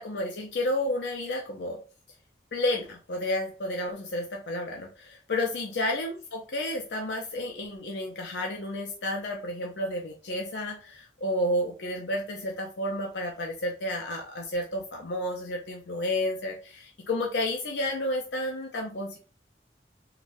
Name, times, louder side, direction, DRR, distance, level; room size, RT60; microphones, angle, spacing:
voice 1, 0.0-1.8 2.5-19.2, left 1 dB, 75° left, 0 dB, 0.6 m, -31 dB
3.8 x 2.3 x 2.5 m, 0.36 s
head